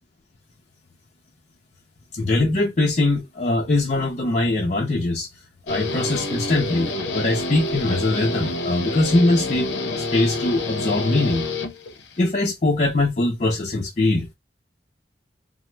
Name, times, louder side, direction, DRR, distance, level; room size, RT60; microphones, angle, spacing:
voice 1, 2.1-5.3 5.7-9.7 10.0-11.4 12.2-14.3, left 2 dB, 40° left, 0.5 m, -22 dB
Guitar, 5.7-12.2, left 2 dB, 85° left, 0.6 m, -28 dB
2.9 x 2.0 x 3.1 m
head